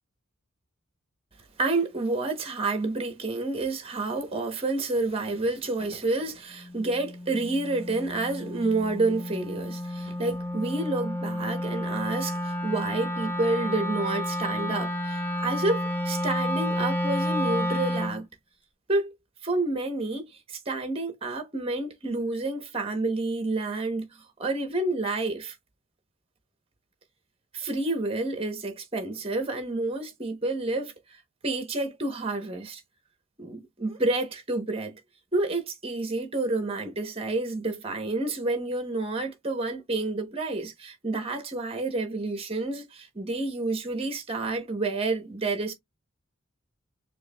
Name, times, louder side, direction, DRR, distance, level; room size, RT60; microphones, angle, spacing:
voice 1, 1.6-18.3 18.9-19.1 19.4-25.5 27.5-30.9 31.4-32.8 33.4-35.0 35.3-45.7, right 2 dB, 25° right, 0.9 m, -29 dB
Wind instrument woodwind instrument, 6.6-18.2, left 1 dB, 10° left, 0.5 m, -31 dB
4.6 x 3.0 x 2.3 m
head